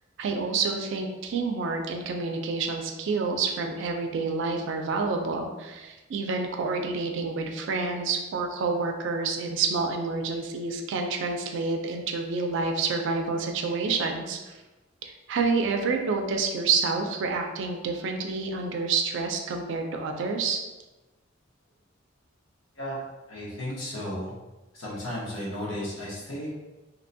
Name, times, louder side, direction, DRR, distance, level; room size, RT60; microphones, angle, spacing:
voice 1, 0.2-14.5 15.0-20.6, right 4 dB, 65° right, 3 dB, 0.3 m, -28 dB
voice 2, 23.3-24.3 24.7-26.5, left 1 dB, 75° left, -6 dB, 1.0 m, -34 dB
2.7 x 2.2 x 2.6 m, 1.1 s
head